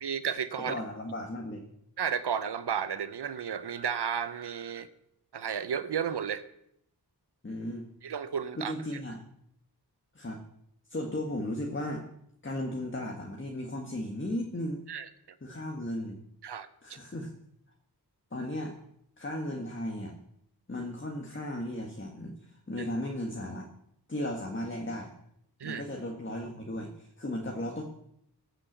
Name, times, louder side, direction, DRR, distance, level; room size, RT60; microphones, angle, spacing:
voice 1, 0.0-0.7 2.0-4.9 5.3-6.4 8.0-8.7 14.9-15.1 16.4-16.7 25.6-25.8, right 7 dB, 75° right, 13 dB, 0.8 m, -32 dB
voice 2, 0.7-1.7 7.4-7.9 8.6-9.2 10.1-10.4 10.9-12.0 12.4-14.8 15.4-16.2 16.8-17.3 18.3-18.7 19.2-20.1 20.7-23.7 24.1-25.1 25.6-27.8, left 1 dB, 30° left, 1 dB, 1.6 m, -35 dB
14.0 x 6.0 x 7.9 m, 0.75 s
wide cardioid pair, 55°, 40 cm